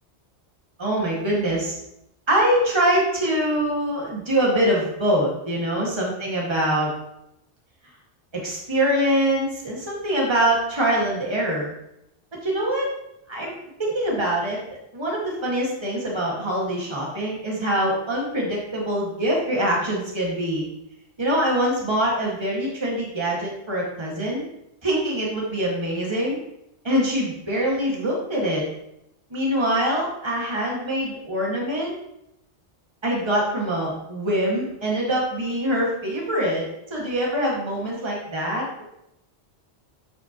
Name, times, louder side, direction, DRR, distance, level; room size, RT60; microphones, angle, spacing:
voice 1, 0.8-1.8 2.3-6.9 8.3-11.7 12.4-12.9 13.3-13.5 13.8-14.6 14.9-20.7 21.2-24.4 24.8-26.4 26.8-28.7 29.3-31.9 33.0-36.7 36.9-38.8, right 1 dB, 25° right, -4 dB, 1.8 m, -24 dB
11.0 x 5.7 x 2.9 m, 0.82 s
omnidirectional pair, 1.1 m